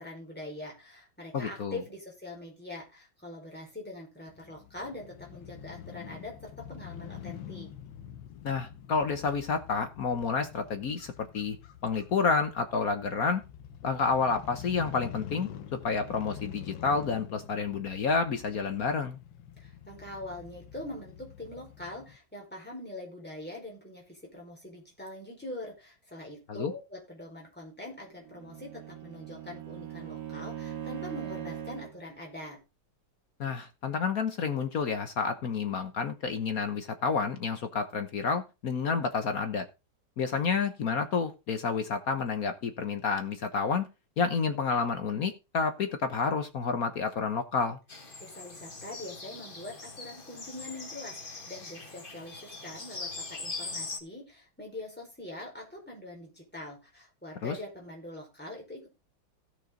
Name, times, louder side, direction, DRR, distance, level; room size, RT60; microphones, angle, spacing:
voice 1, 0.0-7.7 19.6-32.6 48.2-58.9, left 1 dB, 5° left, -1 dB, 4.6 m, -43 dB
voice 2, 1.3-1.8 8.4-11.6 11.8-13.4 13.8-19.2 26.5-26.7 33.4-39.7 40.2-43.9 44.2-47.8 57.4-57.6, left 5 dB, 55° left, 8 dB, 1.3 m, -29 dB
Crow / Motorcycle, 4.3-22.2, left 9 dB, 80° left, 1.7 m, -46 dB
Bowed string instrument, 28.1-32.0, right 10 dB, 60° right, 2.5 m, -40 dB
sound 1, 47.9-54.0, left 3 dB, 30° left, 1.8 m, -41 dB
16.5 x 6.1 x 3.8 m, 0.28 s
omnidirectional pair, 2.1 m